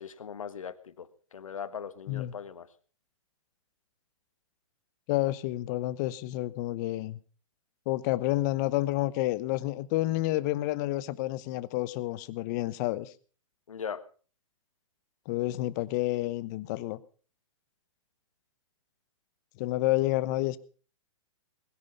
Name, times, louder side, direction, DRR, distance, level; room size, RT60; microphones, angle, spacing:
voice 1, 0.0-2.7 13.7-14.0, left 7 dB, 85° left, 1.5 m, -40 dB
voice 2, 5.1-7.2 7.9-13.1 15.3-17.0 19.6-20.6, left 17 dB, 35° left, 0.9 m, -29 dB
20.5 x 10.5 x 5.5 m
hypercardioid pair, 145°, 17 cm